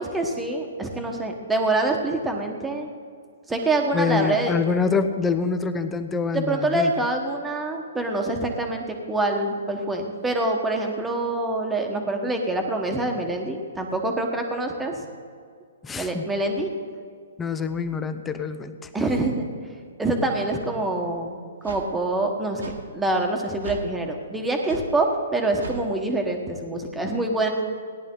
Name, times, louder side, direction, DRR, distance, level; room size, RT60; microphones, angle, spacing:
voice 1, 0.0-2.9 3.5-4.5 6.3-15.0 16.0-16.7 18.9-19.4 20.0-21.4 21.6-22.6 22.9-27.5, right 2 dB, 10° right, 2 dB, 1.4 m, -25 dB
voice 2, 3.9-6.9 15.8-16.3 17.4-18.9, left 5 dB, 15° left, 9 dB, 0.7 m, -25 dB
sound 1, 20.8-20.9 21.6-21.9 22.6-22.8 23.6-23.9 24.7-24.9 25.6-25.8, right 3 dB, 80° right, 1.6 m, -36 dB
17.5 x 10.5 x 3.9 m, 2.1 s
hypercardioid pair, 130°, 0 cm